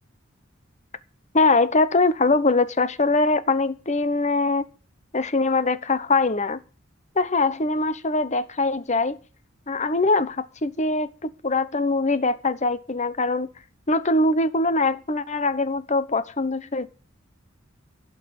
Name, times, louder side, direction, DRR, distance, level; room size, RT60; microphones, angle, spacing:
voice 1, 1.3-4.6 5.1-6.6 7.1-9.2 9.7-13.5 13.9-16.9, left 3 dB, 35° left, 1.1 m, -22 dB
16.5 x 6.0 x 8.8 m
head